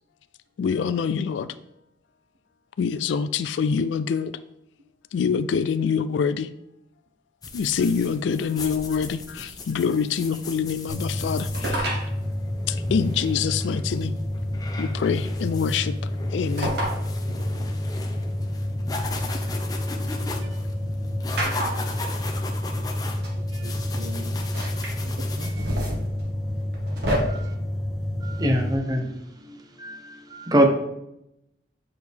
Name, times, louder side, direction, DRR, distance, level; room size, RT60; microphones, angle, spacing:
voice 1, 0.6-1.5 2.8-4.3 5.1-6.5 7.5-11.9 12.7-14.1 14.8-15.9 16.3-16.7, left 6 dB, 80° left, 13 dB, 0.3 m, -25 dB
sound 1, 7.4-25.8, left 3 dB, 20° left, 0.7 m, -38 dB
sound 2, 10.9-28.7, left 1 dB, 5° right, 1.4 m, -29 dB
sound 3, 11.5-12.1 13.4-13.5 15.0-15.4 16.6-17.0 17.4-17.5 18.9-20.1 21.4-22.0 22.9-23.0 23.2-23.4 24.4-24.9 25.4-27.2, right 1 dB, 60° right, 1.6 m, -30 dB
voice 2, 17.3-17.9 19.4-19.9 20.4-21.0 23.3-24.6 25.0-26.2, right 1 dB, 90° right, 5 dB, 1.0 m, -44 dB
voice 3, 28.2-29.1 29.4-30.7, right 1 dB, 20° right, 4 dB, 0.9 m, -24 dB
8.1 x 4.7 x 3.5 m, 0.82 s
head